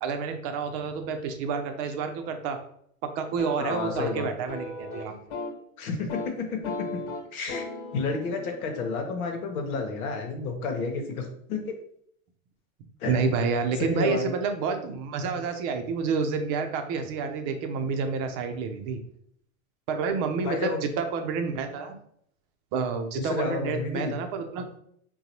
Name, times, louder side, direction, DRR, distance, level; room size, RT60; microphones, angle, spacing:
voice 1, 0.0-2.6 3.2-5.1 13.1-19.0 19.9-22.0 22.7-24.7, right 5 dB, 50° right, 6 dB, 0.6 m, -29 dB
sound 1, 3.3-5.6 5.9-6.3 6.6-10.5, left 3 dB, 60° left, 1.2 m, -39 dB
voice 2, 3.6-4.3 5.8-7.0 7.3-7.7 7.9-11.7 13.0-13.1 13.8-14.3 20.4-20.8 23.2-24.2, left 4 dB, 80° left, 3 dB, 0.9 m, -31 dB
3.9 x 2.2 x 2.9 m, 0.68 s
hypercardioid pair, 105°, 43 cm